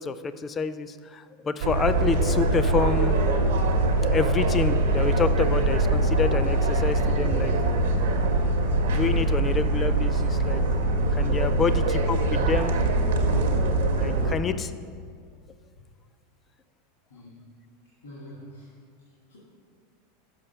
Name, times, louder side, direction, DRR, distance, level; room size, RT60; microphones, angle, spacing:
voice 1, 0.0-3.2 4.1-7.5 8.6-10.6 11.1-12.8 14.0-14.7, left 5 dB, 25° left, 12 dB, 0.3 m, -28 dB
sound 1, 1.6-14.3, right 2 dB, 70° right, 0.7 m, -23 dB
voice 2, 17.1-17.5 18.0-18.7 19.3-19.4, equal, 85° left, -7 dB, 1.9 m, -45 dB
6.5 x 5.5 x 5.4 m, 2.1 s
figure-of-eight pair, 85°, 0 cm